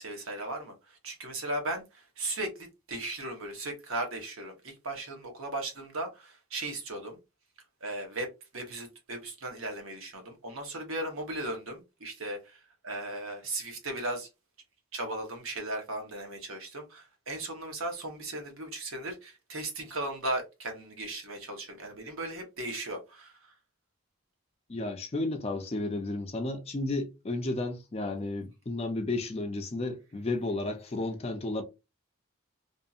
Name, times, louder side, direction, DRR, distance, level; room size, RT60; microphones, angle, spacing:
voice 1, 0.0-7.2 7.8-8.3 8.5-14.3 14.9-23.5, right 2 dB, 70° right, 1.0 m, -37 dB
voice 2, 24.7-31.6, left 2 dB, 30° left, 0.4 m, -32 dB
2.7 x 2.6 x 2.3 m
head